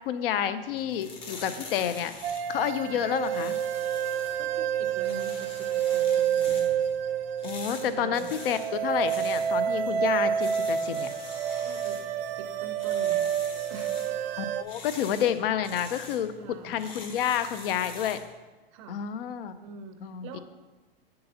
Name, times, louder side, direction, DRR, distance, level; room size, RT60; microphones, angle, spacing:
voice 1, 0.1-2.1 2.5-3.6 7.4-11.1 14.4-16.3 16.6-18.2 18.9-19.5 20.0-20.4, left 9 dB, 70° left, 13 dB, 0.5 m, -29 dB
sound 1, 0.7-18.3, left 4 dB, 20° left, 0.5 m, -46 dB
sound 2, 2.2-14.6, right 8 dB, 80° right, 0.6 m, -29 dB
voice 2, 4.4-6.9 7.8-8.4 11.6-12.0 12.3-13.3 13.7-14.0 16.4-16.9 18.7-19.1 19.6-20.4, right 5 dB, 35° right, 7 dB, 0.5 m, -44 dB
7.6 x 6.8 x 2.8 m, 1.2 s
supercardioid pair, 160°, 30 cm